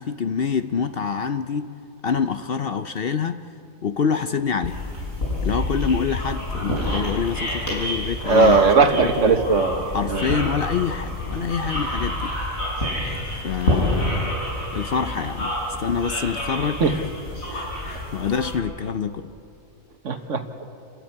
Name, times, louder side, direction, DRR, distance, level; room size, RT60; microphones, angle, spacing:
voice 1, 0.0-1.7 2.0-3.4 3.8-4.8 5.4-8.6 8.9-9.4 9.9-12.3 13.4-14.3 14.7-15.5 15.8-17.1 17.5-19.3, left 6 dB, 55° left, 10 dB, 0.7 m, -26 dB
sound 1, 4.6-18.6, left 1 dB, 85° left, 7.3 m, -28 dB
voice 2, 8.2-9.8 10.1-10.3 16.8-16.9 20.0-20.4, right 4 dB, 65° right, 7 dB, 1.6 m, -18 dB
29.0 x 13.5 x 9.6 m, 2.6 s
omnidirectional pair, 1.4 m